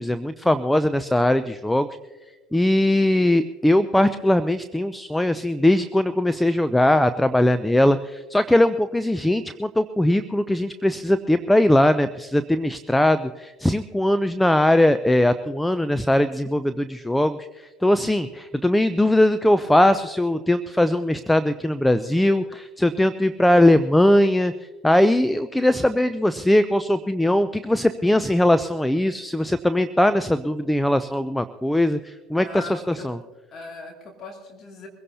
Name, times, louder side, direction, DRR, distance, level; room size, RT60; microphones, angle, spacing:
voice 1, 0.0-1.9 2.5-24.5 24.8-33.2, left 1 dB, 5° left, 11 dB, 0.5 m, -20 dB
voice 2, 32.4-33.1 33.5-34.9, left 3 dB, 45° left, 1 dB, 2.6 m, -39 dB
23.0 x 16.5 x 2.8 m, 1.3 s
hypercardioid pair, 70°, 0 cm